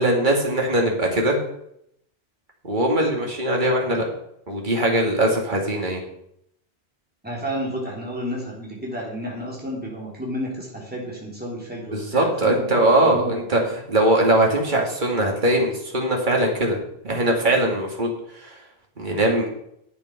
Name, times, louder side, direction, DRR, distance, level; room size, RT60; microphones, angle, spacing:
voice 1, 0.0-1.4 2.6-4.0 4.5-6.0 11.9-16.8 17.0-18.1 18.4-18.5 19.0-19.5, right 1 dB, 50° right, 0 dB, 2.4 m, -21 dB
voice 2, 7.2-13.3 13.6-13.7, equal, 10° right, -4 dB, 3.2 m, -31 dB
11.5 x 8.5 x 5.8 m, 0.75 s
omnidirectional pair, 1.1 m